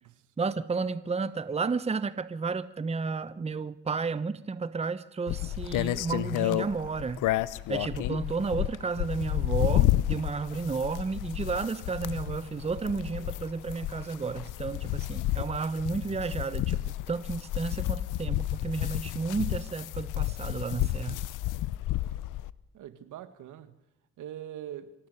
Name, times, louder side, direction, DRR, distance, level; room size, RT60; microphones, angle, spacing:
voice 1, 0.4-7.3 7.7-21.2, right 4 dB, 20° right, 0.8 m, -32 dB
sound 1, 5.3-22.5, left 15 dB, 90° left, 0.7 m, -31 dB
voice 2, 22.7-23.8 24.2-24.9, right 11 dB, 80° right, 1.8 m, -43 dB
25.0 x 17.0 x 6.6 m
cardioid pair, 90°, 30 cm